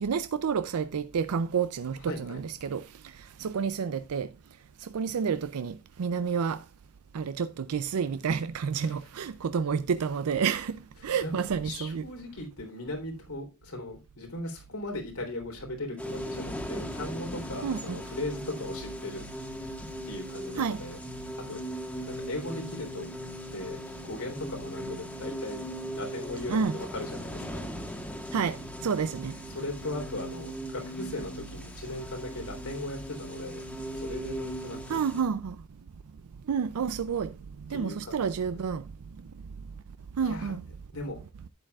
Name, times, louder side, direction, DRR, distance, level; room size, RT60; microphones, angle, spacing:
voice 1, 0.0-4.3 4.8-6.6 7.1-10.8 11.0-12.1 17.6-18.0 20.5-20.8 26.5-26.8 28.3-29.3 34.9-35.6 36.5-37.3 37.7-38.8 40.2-40.6, right 6 dB, 85° right, 0.4 m, -30 dB
voice 2, 2.0-2.4 8.8-8.9 11.2-19.2 20.1-21.0 21.5-21.6 22.1-23.1 23.4-25.7 25.9-27.7 29.5-33.6 33.9-35.0 37.7-38.6 40.2-40.6 40.9-41.2, left 2 dB, 90° left, 3.5 m, -38 dB
sound 1, 16.0-35.2, equal, 5° left, 1.4 m, -39 dB
11.5 x 8.8 x 2.3 m
head